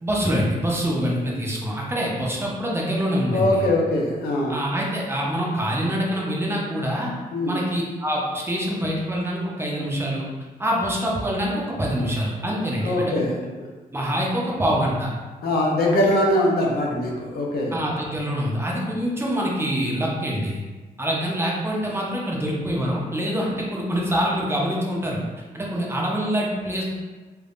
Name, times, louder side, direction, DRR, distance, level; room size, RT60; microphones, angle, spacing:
voice 1, 0.0-3.7 4.5-7.1 7.5-10.2 10.6-13.2 13.9-15.1 17.7-20.6 21.0-25.2 25.5-26.8, equal, 15° right, -3 dB, 0.5 m, -25 dB
voice 2, 3.3-4.6 7.3-7.6 12.8-13.4 15.4-17.7, left 1 dB, 85° left, -2 dB, 0.6 m, -22 dB
3.4 x 2.1 x 2.4 m, 1.3 s
wide cardioid pair, 125°, 15 cm